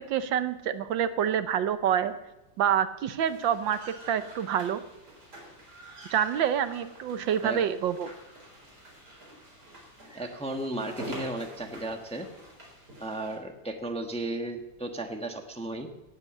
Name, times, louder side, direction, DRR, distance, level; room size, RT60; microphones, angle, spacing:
voice 1, 0.1-2.1 2.6-4.8 6.1-8.1, right 9 dB, 80° right, 11 dB, 1.6 m, -27 dB
sound 1, 3.2-13.4, equal, 55° right, 4.9 m, -47 dB
voice 2, 10.1-12.3 13.0-15.9, right 2 dB, 5° left, 4 dB, 1.0 m, -34 dB
18.0 x 8.0 x 7.2 m, 0.99 s
omnidirectional pair, 2.0 m